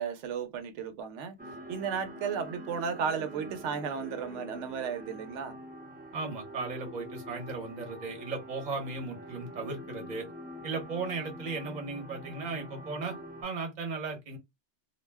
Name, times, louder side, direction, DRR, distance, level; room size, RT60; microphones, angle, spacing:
voice 1, 0.0-1.4 1.7-5.6, right 6 dB, 90° right, 0.9 m, -34 dB
sound 1, 1.4-13.4, equal, 10° right, 0.5 m, -45 dB
voice 2, 6.1-10.3 10.6-13.1 13.4-14.4, right 4 dB, 40° right, 0.9 m, -36 dB
2.4 x 2.1 x 3.3 m
omnidirectional pair, 1.2 m